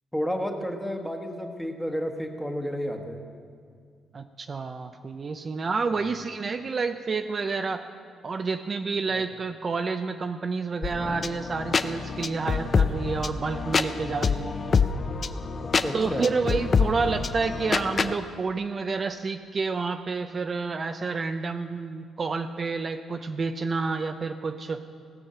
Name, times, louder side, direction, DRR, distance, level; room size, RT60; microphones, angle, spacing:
voice 1, 0.1-3.2 5.9-6.0 9.1-9.2 15.6-16.3, equal, 5° left, 4 dB, 1.3 m, -31 dB
voice 2, 4.1-7.8 8.2-14.6 15.9-24.8, right 4 dB, 40° right, 7 dB, 0.5 m, -29 dB
sound 1, 10.8-18.1, left 5 dB, 40° left, 0.5 m, -27 dB
17.0 x 6.4 x 6.8 m, 2.1 s
cardioid pair, 90°, 0 cm